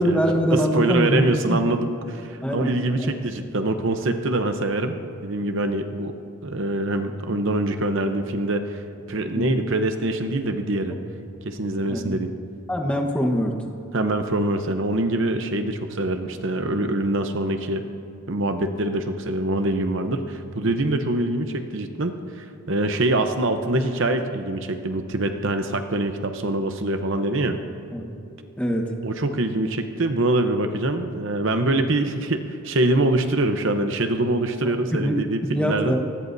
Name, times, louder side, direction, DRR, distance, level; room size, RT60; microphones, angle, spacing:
voice 1, 0.0-1.6 2.4-3.1 9.3-9.6 11.9-12.1 12.7-13.6 27.9-28.0 28.6-28.9 34.6-35.2 35.5-36.0, equal, 5° left, 2 dB, 1.2 m, -23 dB
voice 2, 0.5-6.1 6.4-8.8 9.1-11.0 11.4-12.3 13.9-17.9 18.3-27.6 29.0-36.0, right 2 dB, 60° right, 7 dB, 0.8 m, -24 dB
25.0 x 19.5 x 2.7 m, 2.5 s
head